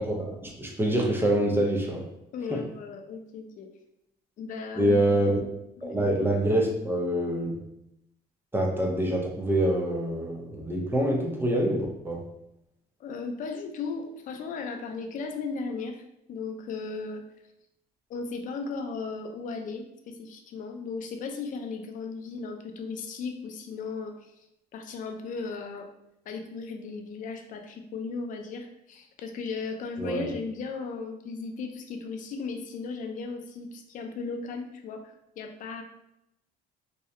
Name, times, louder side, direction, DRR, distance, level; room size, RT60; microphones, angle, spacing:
voice 1, 0.0-2.1 2.5-2.6 4.8-5.4 5.8-7.6 8.5-12.2 30.0-30.3, right 1 dB, 15° right, 0 dB, 0.4 m, -26 dB
voice 2, 2.3-3.7 4.4-5.2 5.8-6.0 13.0-17.2 18.1-24.5 24.7-25.9 26.3-35.8, left 4 dB, 50° left, 5 dB, 0.4 m, -36 dB
2.6 x 2.0 x 2.4 m, 0.83 s
cardioid pair, 110°, 17 cm